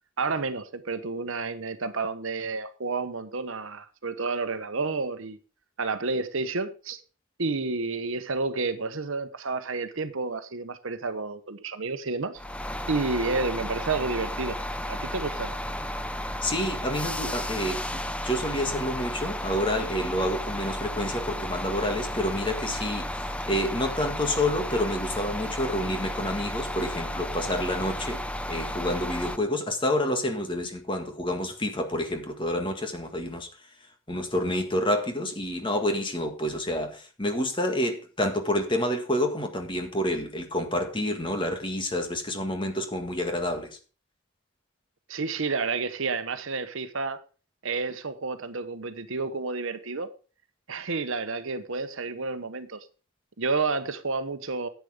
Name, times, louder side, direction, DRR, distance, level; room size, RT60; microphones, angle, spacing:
voice 1, 0.2-5.4 5.8-7.0 7.4-12.4 12.9-14.6 14.9-15.5 45.1-47.2 47.6-50.1 50.7-52.8 53.4-54.7, right 3 dB, 70° right, 1.0 m, -30 dB
sound 1, 12.4-29.4, left 1 dB, 5° left, 0.6 m, -33 dB
voice 2, 16.4-17.9 18.2-23.0 23.5-28.2 28.5-33.5 34.1-43.8, left 1 dB, 20° left, 1.7 m, -28 dB
10.5 x 8.4 x 4.9 m
head